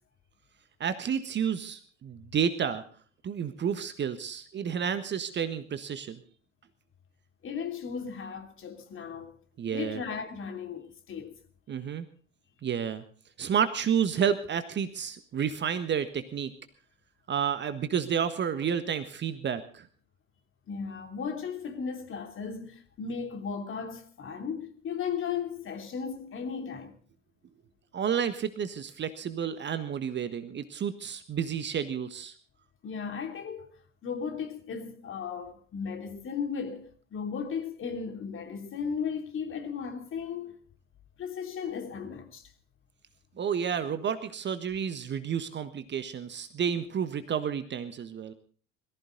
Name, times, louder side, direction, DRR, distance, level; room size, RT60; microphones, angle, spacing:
voice 1, 0.8-2.8 3.2-6.2 9.6-10.0 11.7-12.1 12.6-13.0 13.4-16.5 17.3-19.9 27.9-32.3 43.4-48.3, right 8 dB, 30° right, 1.4 m, -30 dB
voice 2, 7.4-9.3 9.7-11.4 20.7-26.9 32.8-40.6 41.2-42.5, left 6 dB, 35° left, 3.1 m, -36 dB
22.0 x 14.5 x 3.9 m
figure-of-eight pair, 70°, 38 cm